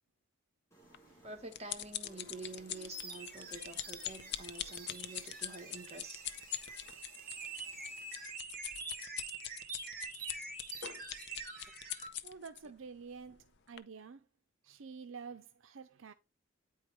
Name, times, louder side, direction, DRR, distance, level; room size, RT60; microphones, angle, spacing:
sound 1, 0.7-8.4, equal, 15° left, 3.4 m, -63 dB
sound 2, 0.9-12.6 13.2-13.4 13.8-13.9, left 11 dB, 60° left, 0.6 m, -43 dB
voice 1, 1.2-6.3, right 3 dB, 30° right, 1.4 m, -48 dB
sound 3, 2.0-12.1, right 4 dB, 50° right, 2.0 m, -47 dB
voice 2, 12.2-14.3 14.6-16.1, right 5 dB, 70° right, 0.6 m, -49 dB
9.3 x 4.6 x 3.1 m
head